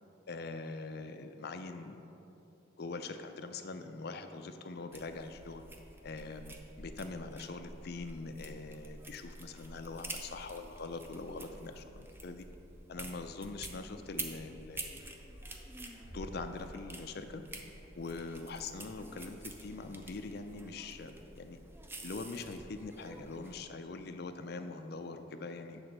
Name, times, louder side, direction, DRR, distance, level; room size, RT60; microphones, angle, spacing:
voice 1, 0.3-2.0 2.8-5.6 6.0-12.4 12.9-14.9 16.1-17.4 18.0-21.6 22.0-25.8, left 3 dB, 55° left, 8 dB, 0.5 m, -43 dB
sound 1, 4.9-23.6, right 2 dB, 10° right, 0.5 m, -48 dB
7.8 x 4.1 x 6.5 m, 2.8 s
head